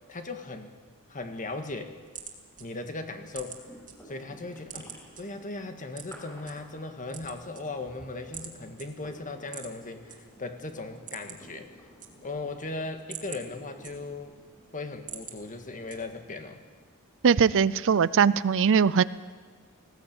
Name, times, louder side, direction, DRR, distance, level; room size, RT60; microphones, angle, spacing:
voice 1, 0.1-0.7 1.1-2.0 2.6-3.6 4.1-11.7 12.2-14.4 14.7-16.6, left 3 dB, 35° left, 6 dB, 1.7 m, -38 dB
sound 1, 1.9-3.9 4.3-5.2 5.9-6.5 7.0-8.0 8.3-8.5 8.8-8.9 9.4-10.2 10.5-10.6 10.9-11.5 11.8-12.5 12.9-14.3 14.7-15.4 15.9-16.3, right 8 dB, 35° right, 2.4 m, -43 dB
sound 2, 3.4-16.1, equal, 15° left, 4.8 m, -53 dB
voice 2, 17.2-19.0, right 6 dB, 60° right, 18 dB, 0.5 m, -21 dB
19.5 x 16.5 x 8.8 m, 1.5 s
head